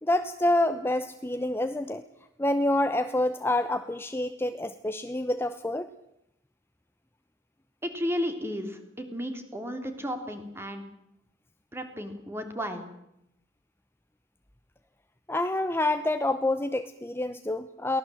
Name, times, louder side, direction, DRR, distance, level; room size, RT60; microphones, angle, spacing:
voice 1, 0.0-2.0 2.4-5.9 15.3-18.0, left 1 dB, 15° left, 9 dB, 0.8 m, -27 dB
voice 2, 7.8-10.8 11.7-12.8, equal, 15° right, 6 dB, 3.1 m, -33 dB
23.0 x 18.0 x 7.8 m, 0.81 s
head